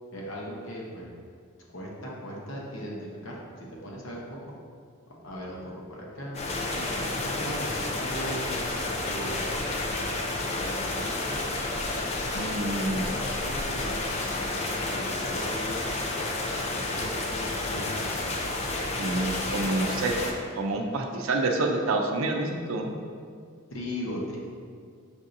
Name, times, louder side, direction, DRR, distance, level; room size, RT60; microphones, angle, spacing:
voice 1, 0.1-1.1 1.7-4.5 5.2-6.4 6.7-8.6 9.0-9.4 10.3-11.4 12.8-15.9 16.5-18.2 23.7-24.4, equal, 70° left, -4 dB, 0.9 m, -38 dB
sound 1, 6.3-20.3, left 2 dB, 30° left, 0.4 m, -30 dB
voice 2, 12.3-13.0 19.0-23.0, right 2 dB, 80° right, 2 dB, 0.5 m, -28 dB
6.1 x 2.7 x 2.5 m, 2.1 s
head